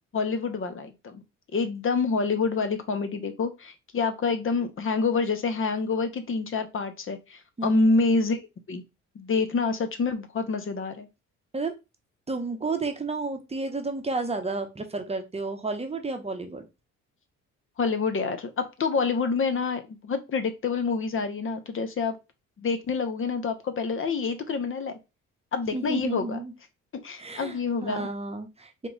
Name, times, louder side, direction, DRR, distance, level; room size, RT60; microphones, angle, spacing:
voice 1, 0.1-1.2 1.5-8.8 9.1-11.1 17.8-22.2 22.6-24.9 25.5-26.4 27.0-28.0, left 4 dB, 45° left, 9 dB, 0.9 m, -27 dB
voice 2, 7.6-7.9 11.5-11.8 12.3-16.7 25.7-26.5 27.2-28.9, right 3 dB, 20° right, 5 dB, 0.9 m, -31 dB
3.7 x 3.0 x 3.9 m, 0.26 s
cardioid pair, 90°, 30 cm